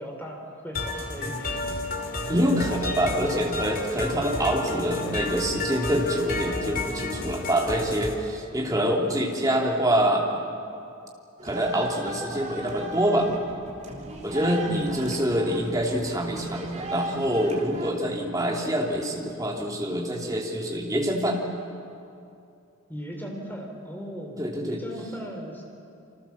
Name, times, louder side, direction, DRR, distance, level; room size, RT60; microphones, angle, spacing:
voice 1, 0.0-1.6 2.2-2.4 2.9-3.2 14.3-15.2 22.9-25.6, equal, 10° left, 1 dB, 3.9 m, -37 dB
sound 1, 0.8-8.1, left 2 dB, 40° left, 2.6 m, -31 dB
voice 2, 2.3-10.6 11.4-13.3 14.2-21.4 24.4-24.8, equal, 15° right, -1 dB, 3.1 m, -26 dB
sound 2, 11.4-17.9, right 1 dB, 30° right, 3.6 m, -37 dB
28.5 x 25.0 x 7.3 m, 2.6 s
head